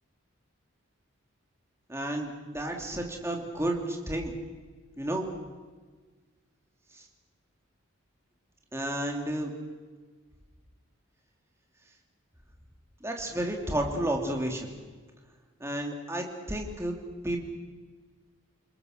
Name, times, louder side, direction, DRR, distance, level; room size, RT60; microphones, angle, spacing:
voice 1, 1.9-4.3 5.0-5.3 6.9-7.0 8.7-9.5 13.0-14.7 15.6-16.9 17.2-17.4, right 1 dB, 15° right, 2 dB, 3.0 m, -31 dB
29.5 x 20.5 x 6.7 m, 1.4 s
head